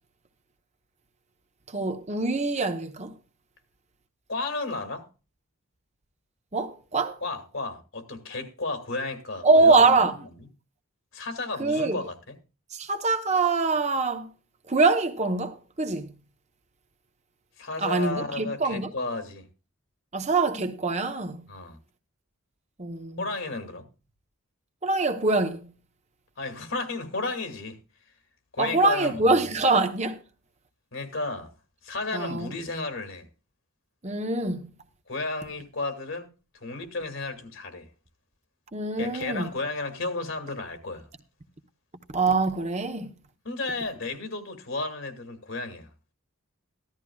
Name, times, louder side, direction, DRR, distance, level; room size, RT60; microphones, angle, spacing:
voice 1, 1.7-3.1 6.5-7.2 9.4-10.2 11.6-12.0 12.7-14.3 14.7-16.1 17.8-18.9 20.1-21.5 22.8-23.2 24.8-25.7 28.6-30.2 32.1-32.5 34.0-34.7 38.7-39.5 42.1-43.1, right 3 dB, 30° right, 0.9 m, -24 dB
voice 2, 4.3-5.1 7.2-9.9 10.2-10.5 11.1-12.4 17.6-19.5 21.5-21.8 23.2-23.9 26.4-27.8 28.5-29.5 30.9-31.5 31.8-33.3 35.1-36.3 36.5-37.9 39.0-41.1 43.4-45.9, left 3 dB, 60° left, 2.3 m, -33 dB
15.5 x 13.0 x 2.3 m
head